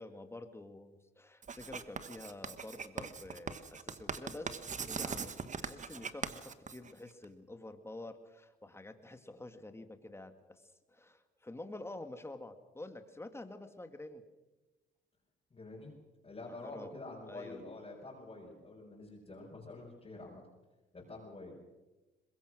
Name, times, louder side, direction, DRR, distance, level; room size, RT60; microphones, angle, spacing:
voice 1, 0.0-4.5 4.8-5.3 5.6-10.3 10.9-14.2 16.5-16.9 17.3-17.5, left 2 dB, 10° left, 8 dB, 2.1 m, -48 dB
Writing, 1.4-7.2, right 5 dB, 40° right, 1.3 m, -41 dB
voice 2, 15.5-16.0 16.2-20.4 20.9-21.6, left 2 dB, 30° left, -3 dB, 5.5 m, -47 dB
22.5 x 21.0 x 6.3 m, 1.1 s
cardioid pair, 90°, 20 cm